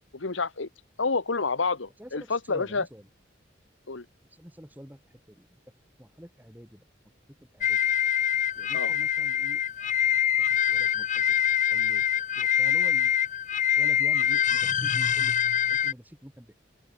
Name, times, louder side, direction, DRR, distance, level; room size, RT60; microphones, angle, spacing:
voice 1, 0.1-0.7 1.0-2.8 3.9-4.0 8.7-8.9, left 4 dB, 85° left, 1.4 m, -28 dB
voice 2, 2.0-3.1 4.3-5.5 6.0-6.8 7.3-7.8 8.6-10.0 10.5-11.3 11.6-13.1 13.8-16.5, equal, 10° right, 3.1 m, -47 dB
sound 1, 7.6-15.9, left 9 dB, 40° left, 0.9 m, -24 dB
open air
head